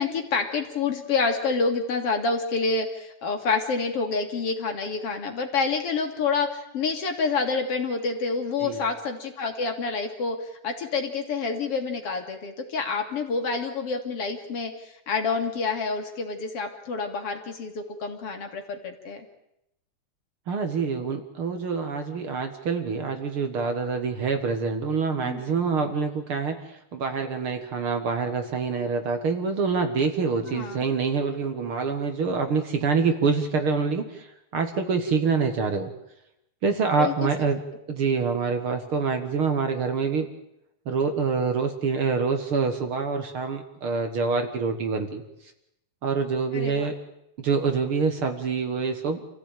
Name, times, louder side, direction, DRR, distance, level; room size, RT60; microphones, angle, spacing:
voice 1, 0.0-19.3 25.2-25.5 30.4-30.9 37.0-37.3 46.5-46.9, left 4 dB, 55° left, 4 dB, 3.0 m, -28 dB
voice 2, 20.5-34.3 34.5-35.9 36.6-37.6 37.9-40.3 40.9-45.2 46.0-46.9 47.4-49.2, right 5 dB, 50° right, 6 dB, 2.1 m, -26 dB
27.5 x 15.5 x 9.0 m, 0.82 s
omnidirectional pair, 3.3 m